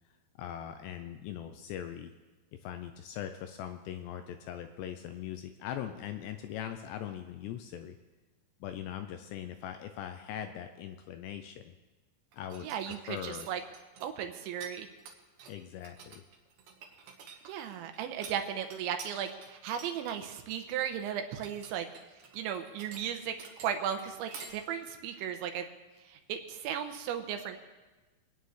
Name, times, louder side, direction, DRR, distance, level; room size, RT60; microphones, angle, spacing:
voice 1, 0.4-2.1 2.6-8.0 8.6-11.7 12.3-13.5 15.5-16.2, left 10 dB, 80° left, 7 dB, 2.5 m, -41 dB
sound 1, 12.3-14.7 15.0-24.5, right 6 dB, 65° right, 2.7 m, -49 dB
voice 2, 12.6-13.6 14.0-14.9 17.5-21.9 22.3-23.3 23.6-25.6 26.1-27.6, right 9 dB, 85° right, 6 dB, 3.2 m, -36 dB
26.0 x 9.2 x 3.2 m, 1.2 s
omnidirectional pair, 5.3 m